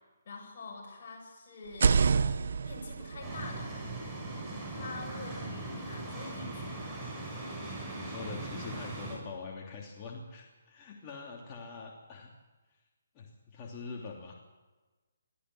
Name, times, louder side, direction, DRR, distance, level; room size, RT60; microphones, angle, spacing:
voice 1, 0.2-2.1 2.6-3.7 4.7-6.8, left 3 dB, 45° left, -1 dB, 7.8 m, -46 dB
sound 1, 1.6-5.5, right 5 dB, 65° right, 1.1 m, -30 dB
sound 2, 3.2-9.2, right 2 dB, 10° right, 6.9 m, -40 dB
voice 2, 7.9-12.3 13.1-14.3, left 4 dB, 25° left, -2 dB, 3.0 m, -44 dB
23.5 x 14.0 x 7.9 m, 1.2 s
hypercardioid pair, 155°, 0 cm